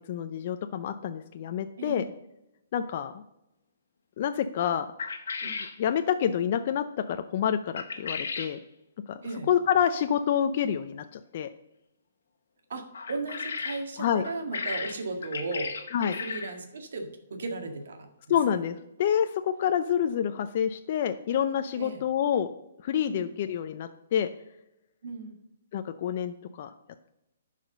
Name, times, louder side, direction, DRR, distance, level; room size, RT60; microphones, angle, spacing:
voice 1, 0.1-2.0 2.7-3.2 4.2-4.9 5.4-5.5 5.8-8.6 9.1-9.2 9.5-11.5 14.0-14.2 15.9-16.1 18.3-22.5 22.8-24.3 25.7-26.7, left 9 dB, 45° left, 8 dB, 0.5 m, -28 dB
voice 2, 1.8-2.1 5.4-5.6 9.2-9.5 12.7-15.8 16.0-18.4 21.8-22.0 23.1-23.3 25.0-25.3, right 3 dB, 70° right, 5 dB, 1.8 m, -36 dB
sound 1, 5.0-5.8 7.7-8.5 12.9-13.8 14.2-16.6, left 5 dB, 70° left, 1.3 m, -35 dB
10.5 x 5.0 x 6.6 m, 0.89 s
hypercardioid pair, 155°, 0 cm